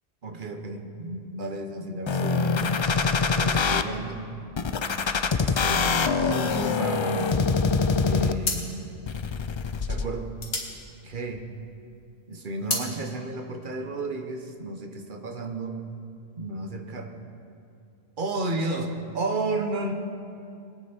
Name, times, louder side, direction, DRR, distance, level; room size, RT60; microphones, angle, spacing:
voice 1, 0.2-2.8 3.3-4.2 5.4-7.4 8.0-8.7 9.9-10.3 11.0-11.5 12.3-15.8 16.4-17.1 18.2-19.9, right 2 dB, 55° right, 5 dB, 1.2 m, -32 dB
sound 1, 2.1-3.8 4.6-8.6 9.1-10.1, left 5 dB, 45° left, 0.4 m, -24 dB
sound 2, 7.7-8.0 8.4-11.8 12.1-12.9, left 3 dB, 70° left, 1.8 m, -33 dB
22.0 x 8.9 x 4.4 m, 2.6 s
omnidirectional pair, 1.0 m